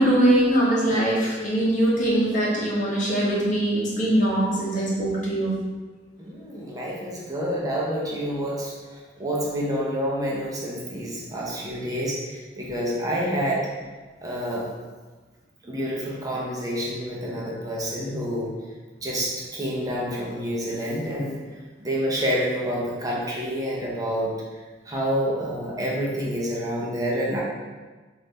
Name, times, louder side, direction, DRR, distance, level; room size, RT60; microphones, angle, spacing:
voice 1, 0.0-5.5, right 1 dB, 45° left, -5 dB, 1.0 m, -22 dB
voice 2, 6.2-13.7 14.2-14.7 15.6-18.5 19.0-21.4 21.8-24.3 24.9-27.4, equal, 20° right, -4 dB, 0.7 m, -28 dB
3.1 x 2.6 x 3.5 m, 1.3 s
head